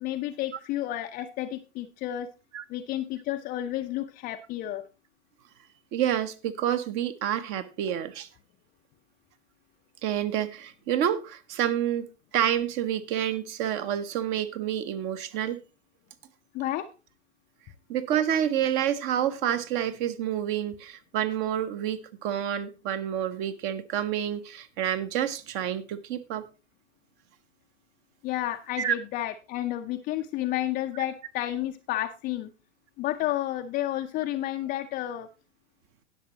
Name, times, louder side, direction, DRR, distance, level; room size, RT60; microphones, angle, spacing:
voice 1, 0.0-2.3 2.7-4.8 16.5-16.9 28.2-32.5 33.0-35.3, left 13 dB, 25° left, 0.6 m, -31 dB
voice 2, 5.9-8.3 10.0-12.1 12.3-15.6 17.9-26.4 28.8-28.9, right 10 dB, 35° right, 0.9 m, -28 dB
19.0 x 6.7 x 2.9 m
figure-of-eight pair, 95°, 36 cm